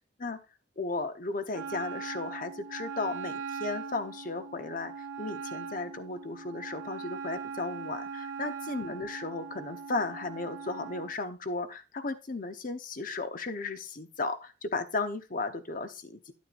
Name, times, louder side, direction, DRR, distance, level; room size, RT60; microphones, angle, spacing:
voice 1, 0.8-16.3, left 3 dB, 45° left, 9 dB, 0.9 m, -35 dB
Wind instrument woodwind instrument, 1.5-11.1, right 5 dB, 80° right, 2.0 m, -40 dB
9.6 x 9.3 x 2.5 m, 0.28 s
head